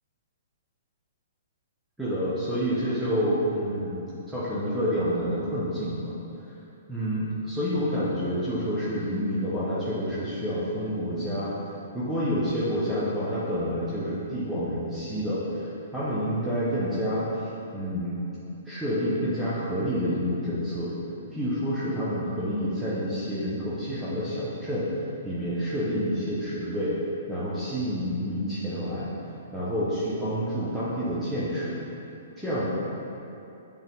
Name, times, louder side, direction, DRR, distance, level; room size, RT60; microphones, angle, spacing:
voice 1, 2.0-6.1 6.9-11.5 11.9-18.2 18.6-20.9 21.3-24.8 25.2-26.9 27.3-29.1 29.5-31.8 32.4-32.7, equal, 5° right, -11 dB, 1.1 m, -28 dB
7.9 x 3.5 x 3.9 m, 2.9 s
hypercardioid pair, 125°, 0 cm